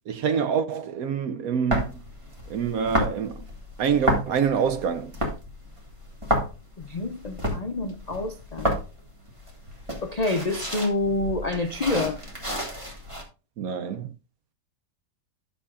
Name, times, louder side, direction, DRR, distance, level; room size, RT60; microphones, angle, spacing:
voice 1, 0.1-2.0 2.5-3.5 3.8-5.1 13.6-14.1, right 7 dB, 70° right, 0.9 m, -26 dB
sound 1, 1.7-13.2, equal, 20° right, 1.8 m, -30 dB
voice 2, 6.8-8.8 10.0-12.2, left 2 dB, 85° left, 0.3 m, -27 dB
12.5 x 6.9 x 2.4 m
omnidirectional pair, 1.9 m